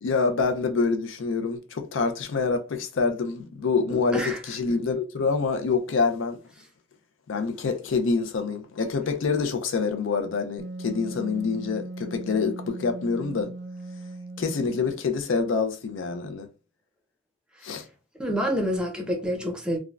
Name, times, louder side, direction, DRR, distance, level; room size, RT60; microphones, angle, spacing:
voice 1, 0.0-6.4 7.3-13.5 14.4-16.5 17.6-17.8, left 4 dB, 75° left, 0.4 m, -26 dB
voice 2, 3.9-4.4 18.2-19.8, equal, 5° right, 0.6 m, -28 dB
Wind instrument woodwind instrument, 10.6-15.0, right 2 dB, 55° right, 0.4 m, -38 dB
3.5 x 2.1 x 2.3 m
head